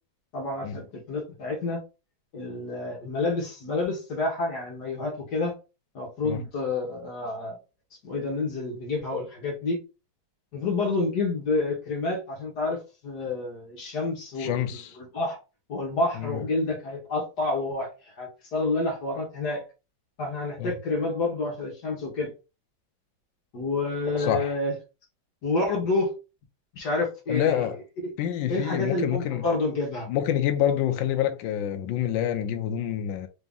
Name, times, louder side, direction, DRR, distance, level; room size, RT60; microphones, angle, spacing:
voice 1, 0.3-1.8 2.3-5.5 5.9-7.6 8.0-9.8 10.5-14.7 15.0-15.4 15.7-19.6 20.2-22.3 23.5-24.7 25.4-26.1 26.7-27.7 28.0-28.1 28.5-30.1, left 3 dB, 55° left, 1.6 m, -29 dB
voice 2, 14.4-14.9 16.2-16.4 20.6-20.7 24.2-24.5 27.3-27.8 28.2-29.4 30.1-33.3, left 10 dB, 75° left, 1.2 m, -27 dB
4.0 x 2.8 x 3.5 m
omnidirectional pair, 2.2 m